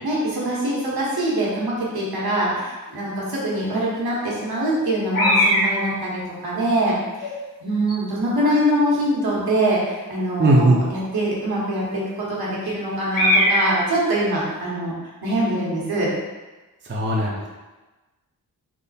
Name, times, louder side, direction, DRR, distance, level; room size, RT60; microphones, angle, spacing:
voice 1, 0.0-7.3 7.6-14.9 15.2-16.1, right 1 dB, 80° right, -5 dB, 1.2 m, -23 dB
sound 1, 3.5-3.6 3.9-4.9 5.1-5.8 6.5-6.7 7.2-7.5 7.9-8.0 8.4-8.6 9.6-9.8 13.1-13.8, left 1 dB, 60° left, 1.2 m, -21 dB
voice 2, 10.4-10.8 16.9-17.5, right 2 dB, 30° right, -3 dB, 0.6 m, -17 dB
3.6 x 2.1 x 4.1 m, 1.2 s
wide cardioid pair, 80°, 37 cm